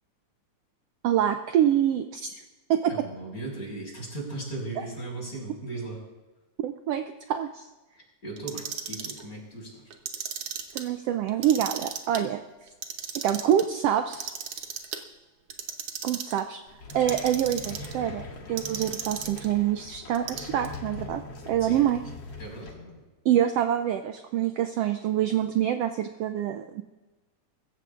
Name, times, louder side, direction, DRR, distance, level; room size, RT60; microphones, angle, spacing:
voice 1, 1.0-2.3 2.7-2.9 6.6-7.0 7.3-7.7 10.7-12.7 13.1-14.3 16.0-16.6 16.9-18.2 18.5-22.0 23.2-26.8, right 10 dB, 80° right, 7 dB, 1.4 m, -26 dB
voice 2, 2.9-6.0 8.2-9.9 21.6-21.9 22.4-23.0, right 2 dB, 25° left, -2 dB, 5.6 m, -37 dB
Clock, 8.4-9.2 9.9-10.8 11.3-12.2 12.7-13.6 14.1-15.0 15.5-16.4 16.9-17.9 18.6-19.5 20.1-20.8, right 8 dB, 65° right, 1.7 m, -35 dB
sound 1, 16.7-22.7, left 3 dB, 50° left, 2.1 m, -41 dB
24.0 x 14.5 x 2.5 m, 1.2 s
omnidirectional pair, 3.4 m